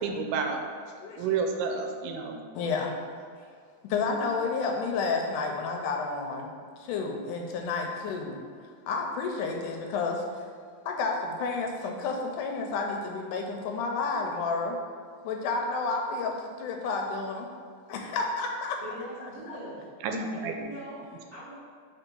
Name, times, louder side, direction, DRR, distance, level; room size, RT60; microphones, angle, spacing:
voice 1, 0.0-0.6 1.2-2.4 20.0-20.5, right 5 dB, 80° right, 4 dB, 2.0 m, -30 dB
voice 2, 2.6-2.9 3.9-6.5 6.8-8.4 8.9-10.4 10.9-14.8 15.2-17.5 17.9-18.8 19.2-19.6, left 4 dB, 80° left, 2 dB, 2.0 m, -31 dB
voice 3, 18.8-19.9 20.3-21.5, equal, 55° right, -10 dB, 0.7 m, -41 dB
4.5 x 4.2 x 5.2 m, 2.1 s
omnidirectional pair, 3.8 m